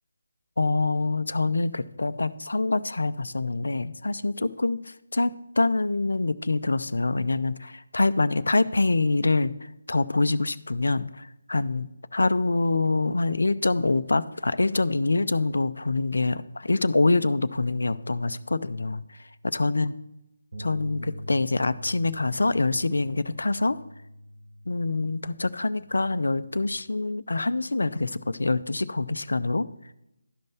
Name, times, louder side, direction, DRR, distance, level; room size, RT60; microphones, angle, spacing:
voice 1, 0.6-20.0 20.6-23.8 24.7-29.7, left 3 dB, 65° left, 15 dB, 0.5 m, -25 dB
Bass guitar, 20.5-26.8, left 1 dB, 65° right, 3.6 m, -43 dB
12.0 x 5.3 x 5.8 m, 0.88 s
figure-of-eight pair, 150°, 0 cm